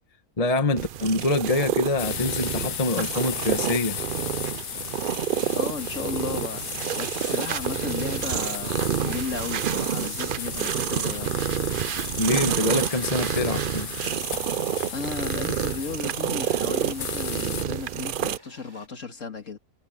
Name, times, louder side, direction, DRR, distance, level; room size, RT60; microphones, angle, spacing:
voice 1, 0.4-4.0 12.2-13.9, left 2 dB, 25° left, 1.4 m, -25 dB
sound 1, 0.8-18.4, right 9 dB, 80° right, 0.4 m, -29 dB
sound 2, 2.0-17.7, left 12 dB, 80° left, 1.3 m, -36 dB
voice 2, 5.5-6.7 7.0-11.5 14.8-19.6, left 5 dB, 55° left, 2.4 m, -34 dB
sound 3, 13.1-18.9, equal, 15° right, 8.1 m, -53 dB
omnidirectional pair, 1.6 m